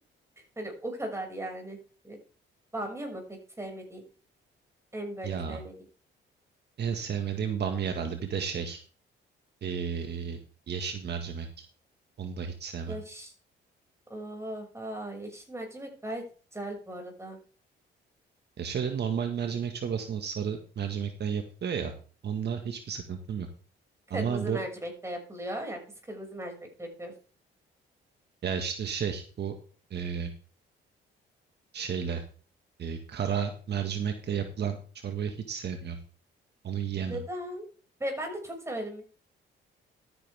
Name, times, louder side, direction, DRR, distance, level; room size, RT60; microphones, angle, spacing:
voice 1, 0.6-1.8 2.0-2.2 2.7-4.0 4.9-5.7 12.9-13.3 14.1-16.2 16.5-17.4 24.1-25.8 26.1-27.1 37.1-37.6 38.0-39.1, right 1 dB, 15° right, 2 dB, 6.4 m, -37 dB
voice 2, 5.2-5.6 6.8-8.8 9.6-10.4 10.7-11.6 12.2-13.0 18.6-21.9 22.2-23.5 24.1-24.6 28.4-29.5 29.9-30.3 31.7-32.2 32.8-34.8 35.0-36.0 36.6-37.2, right 7 dB, 55° right, 5 dB, 1.8 m, -32 dB
13.0 x 10.0 x 3.6 m, 0.39 s
cardioid pair, 90°, 20 cm